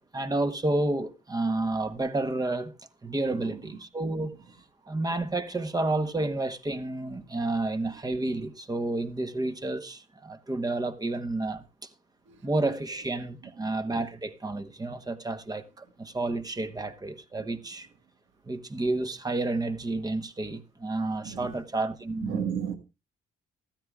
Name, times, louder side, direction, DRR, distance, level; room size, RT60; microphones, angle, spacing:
voice 1, 0.1-2.7 3.0-4.3 4.9-11.9 12.4-17.9 18.5-22.4, right 2 dB, 20° right, 1.1 m, -30 dB
voice 2, 21.2-21.6 22.2-22.7, right 8 dB, 80° right, 1.6 m, -34 dB
16.0 x 13.5 x 2.4 m
cardioid pair, 90°, 20 cm